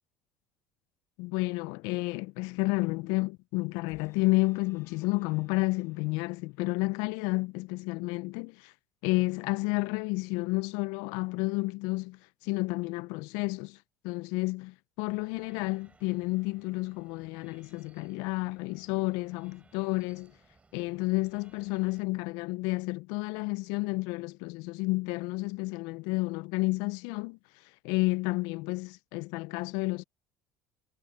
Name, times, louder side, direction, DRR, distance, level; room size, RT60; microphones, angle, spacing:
voice 1, 1.2-8.7 9.0-13.8 14.0-20.3 20.7-27.4 27.8-30.0, left 24 dB, 80° left, 0.4 m, -31 dB
sound 1, 3.9-6.8 7.3-7.4, left 8 dB, 40° left, 7.1 m, -62 dB
sound 2, 15.1-22.1, right 3 dB, 20° right, 7.9 m, -63 dB
supercardioid pair, 95°, 7 cm